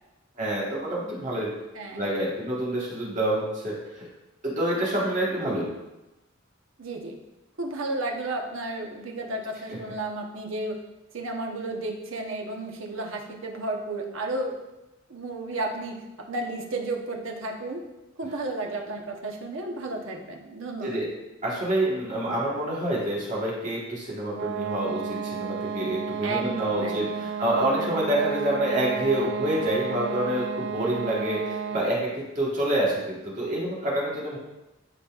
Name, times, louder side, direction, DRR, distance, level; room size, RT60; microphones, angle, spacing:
voice 1, 0.4-1.5 2.0-4.1 4.4-5.7 9.7-9.8 20.8-21.1 21.4-34.4, right 1 dB, 40° right, -5 dB, 1.5 m, -27 dB
voice 2, 1.7-2.1 6.8-7.1 7.6-10.8 11.1-14.6 15.1-17.8 18.2-21.0 26.2-27.3, right 2 dB, 85° right, 1 dB, 1.0 m, -33 dB
sound 1, 24.3-32.0, right 7 dB, 55° right, 0.3 m, -32 dB
12.0 x 4.0 x 2.4 m, 0.99 s
head